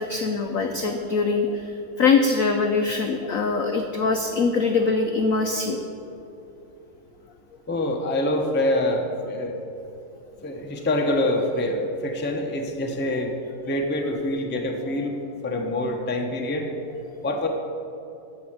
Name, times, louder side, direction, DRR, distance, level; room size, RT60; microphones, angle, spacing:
voice 1, 0.0-5.8 15.7-15.8, left 4 dB, 75° left, 5 dB, 0.7 m, -23 dB
voice 2, 7.7-9.6 10.4-13.3 13.7-15.2 15.4-16.7 17.2-17.5, left 1 dB, 15° left, 2 dB, 0.4 m, -25 dB
13.0 x 4.9 x 8.8 m, 2.8 s
omnidirectional pair, 2.2 m